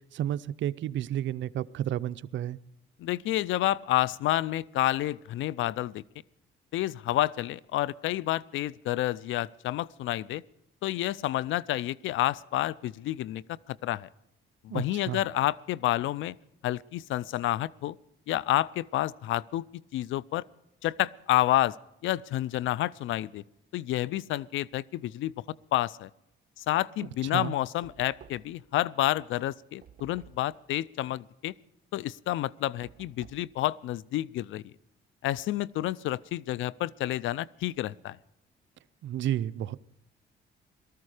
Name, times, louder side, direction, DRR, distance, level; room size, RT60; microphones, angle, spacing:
voice 1, 0.1-2.6 14.7-15.2 27.0-27.5 39.0-39.8, right 11 dB, 70° right, 0.6 m, -32 dB
voice 2, 3.0-6.0 6.7-10.4 10.8-13.4 13.8-14.1 14.6-16.3 16.6-18.0 18.3-19.7 19.9-20.4 20.8-21.8 22.0-23.4 23.7-25.3 25.7-26.1 26.6-31.5 31.9-34.6 35.2-38.2, left 14 dB, 80° left, 0.5 m, -29 dB
Knock, 27.8-28.7 29.8-30.6 32.8-33.5, right 8 dB, 50° right, 1.3 m, -53 dB
18.5 x 13.5 x 4.9 m
cardioid pair, 90°, 20 cm